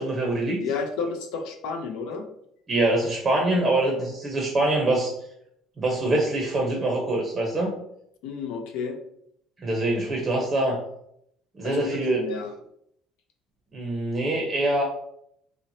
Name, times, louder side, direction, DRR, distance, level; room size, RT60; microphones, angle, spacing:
voice 1, 0.0-0.6 2.7-5.1 5.8-7.7 9.6-10.8 11.6-12.2 13.7-14.8, right 2 dB, 25° right, 1 dB, 0.6 m, -24 dB
voice 2, 0.6-2.3 8.2-9.0 11.6-12.5, left 5 dB, 80° left, 5 dB, 0.4 m, -31 dB
2.9 x 2.0 x 2.6 m, 0.73 s
cardioid pair, 120°, 0 cm